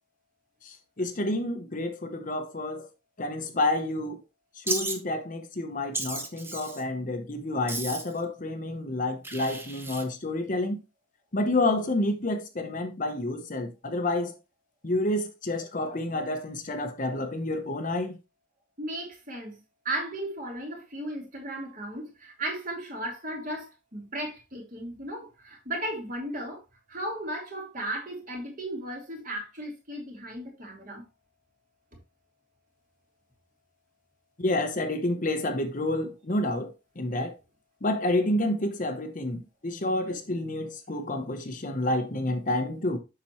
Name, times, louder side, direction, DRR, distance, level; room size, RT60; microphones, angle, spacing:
voice 1, 0.6-2.9 3.2-4.2 4.6-10.8 11.3-14.4 14.8-18.2 34.4-37.4 37.8-43.0, left 1 dB, 40° left, 0.8 m, -29 dB
Wild animals, 4.7-5.0 5.9-6.8 7.7-8.2 9.2-10.0, right 2 dB, 10° right, 0.8 m, -34 dB
voice 2, 18.8-19.6 19.8-26.6 26.9-31.0, right 1 dB, 40° right, 2.6 m, -35 dB
7.2 x 5.9 x 3.0 m
head